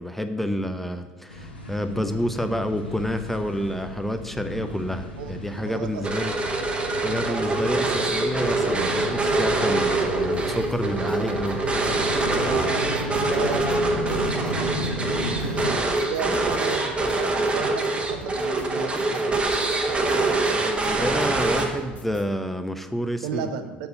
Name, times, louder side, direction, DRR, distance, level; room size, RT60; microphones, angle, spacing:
voice 1, 0.0-6.3 6.9-11.6 20.5-23.5, equal, 5° left, 8 dB, 0.6 m, -29 dB
sound 1, 1.3-15.7, left 1 dB, 85° left, 1.0 m, -34 dB
voice 2, 4.4-4.8 5.2-6.0 7.0-8.2 12.4-14.3 15.4-19.6 23.2-23.9, right 7 dB, 60° right, 8 dB, 0.6 m, -35 dB
sound 2, 6.0-22.0, right 2 dB, 20° right, 1.2 m, -24 dB
sound 3, 10.3-22.2, left 1 dB, 25° left, 1.0 m, -46 dB
6.5 x 4.5 x 6.7 m, 1.3 s
figure-of-eight pair, 65°, 5 cm